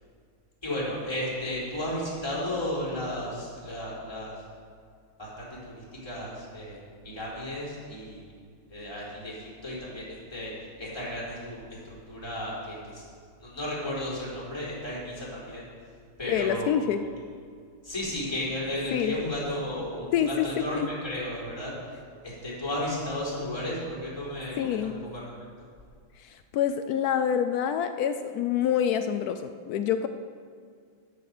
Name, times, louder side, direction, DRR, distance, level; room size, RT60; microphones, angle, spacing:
voice 1, 0.6-4.3 5.2-6.8 7.0-8.3 8.7-10.5 10.8-13.1 13.4-15.7 16.2-16.7 17.8-21.7 22.2-25.2, left 1 dB, 10° left, -8 dB, 3.9 m, -34 dB
voice 2, 16.3-17.0 18.9-19.2 20.1-20.9 24.6-24.9 26.2-30.1, left 9 dB, 85° left, 9 dB, 0.8 m, -27 dB
11.5 x 8.3 x 6.6 m, 2.2 s
omnidirectional pair, 2.2 m